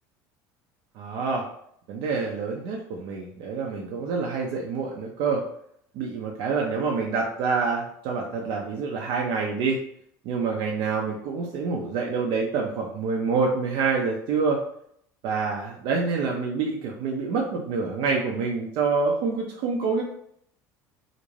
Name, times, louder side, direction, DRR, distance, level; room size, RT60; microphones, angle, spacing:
voice 1, 0.9-1.5 1.9-5.4 5.9-9.8 10.2-14.6 15.2-20.0, right 4 dB, 65° right, 0 dB, 0.5 m, -27 dB
2.5 x 2.1 x 3.1 m, 0.68 s
hypercardioid pair, 85°, 9 cm